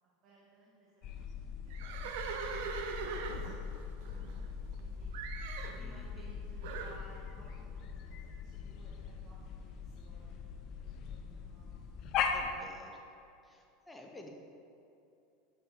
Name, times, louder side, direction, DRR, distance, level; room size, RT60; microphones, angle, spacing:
voice 1, 0.2-5.1 5.7-12.7, right 3 dB, 45° right, -5 dB, 1.1 m, -61 dB
sound 1, 1.0-12.6, left 6 dB, 50° left, 0.5 m, -40 dB
Livestock farm animals working animals, 1.7-4.8 5.1-5.8 6.6-7.0, right 5 dB, 65° right, 0.5 m, -41 dB
voice 2, 5.8-6.3 12.3-12.9 13.4-14.3, left 1 dB, 10° left, 1 dB, 0.9 m, -52 dB
7.5 x 5.5 x 3.0 m, 2.7 s
hypercardioid pair, 90°, 0 cm